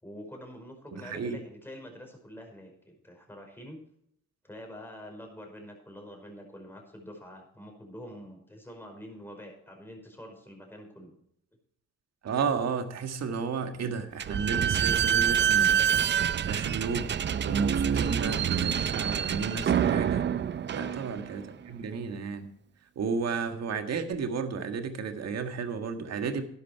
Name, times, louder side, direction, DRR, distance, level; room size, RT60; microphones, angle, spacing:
voice 1, 0.0-3.8 4.4-11.2 14.8-15.0 17.9-18.2 20.7-21.0, equal, 5° left, 2 dB, 5.2 m, -46 dB
voice 2, 0.9-1.4 12.2-17.1 17.4-20.3 20.7-22.5 23.0-26.4, right 5 dB, 60° right, 7 dB, 1.8 m, -33 dB
Slam / Squeak, 14.2-21.5, right 8 dB, 35° right, 0.6 m, -26 dB
11.5 x 10.5 x 4.6 m, 0.69 s
cardioid pair, 90°, 30 cm